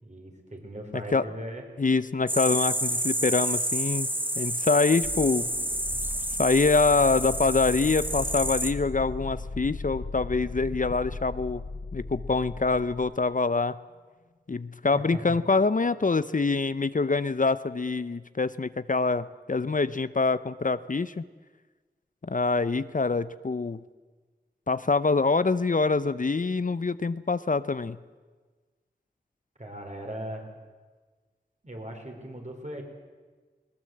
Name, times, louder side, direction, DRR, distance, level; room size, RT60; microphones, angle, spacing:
voice 1, 0.0-1.7 14.9-15.4 29.6-30.5 31.6-32.8, right 1 dB, 45° right, 2 dB, 4.3 m, -38 dB
voice 2, 1.8-4.1 4.4-5.5 6.4-11.6 11.9-13.8 14.5-21.2 22.2-23.8 24.7-28.0, left 4 dB, 50° left, 15 dB, 0.6 m, -25 dB
sound 1, 2.3-8.7, right 1 dB, 10° right, 1.4 m, -29 dB
sound 2, 5.0-13.2, left 3 dB, 75° left, 1.0 m, -38 dB
20.5 x 18.5 x 7.8 m, 1.4 s
wide cardioid pair, 50°, 17 cm